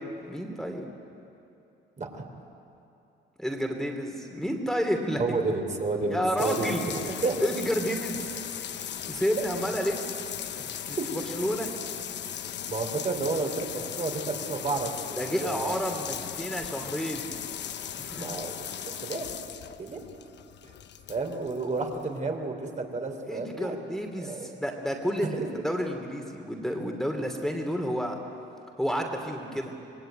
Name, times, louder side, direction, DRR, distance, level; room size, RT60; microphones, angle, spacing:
voice 1, 0.2-0.9 3.4-5.4 6.1-6.8 7.1-8.4 9.1-10.1 10.6-11.0 11.3-11.7 15.2-17.4 18.0-18.3 23.3-28.2 28.8-29.7, equal, ahead, 2 dB, 2.9 m, -30 dB
voice 2, 5.2-6.7 7.0-7.4 11.0-11.1 12.7-15.8 18.2-19.3 19.8-20.0 21.1-23.8 24.2-24.5 25.2-25.5 26.8-27.0, right 3 dB, 40° right, 3 dB, 3.9 m, -31 dB
sound 1, 6.4-22.2, left 9 dB, 60° left, 1.1 m, -37 dB
26.0 x 20.0 x 9.3 m, 2.8 s
cardioid pair, 90°, 20 cm